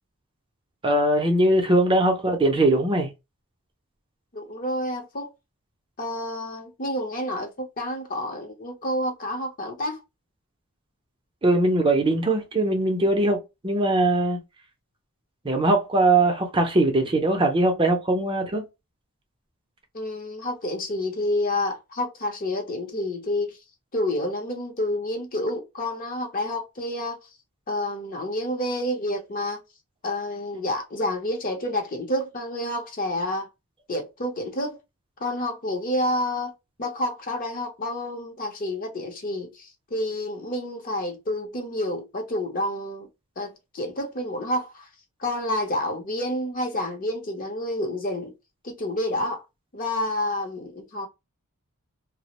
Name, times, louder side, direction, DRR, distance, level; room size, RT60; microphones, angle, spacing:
voice 1, 0.8-3.1 11.4-14.4 15.4-18.6, right 2 dB, 25° right, 0.5 m, -21 dB
voice 2, 4.3-5.3 6.0-10.0 19.9-23.6 23.9-27.2 27.7-29.6 30.0-33.5 33.9-34.8 35.2-36.5 36.8-43.1 43.4-44.9 45.2-48.3 48.6-49.4 49.7-51.1, left 1 dB, 40° left, 0.7 m, -29 dB
2.4 x 2.0 x 2.8 m
head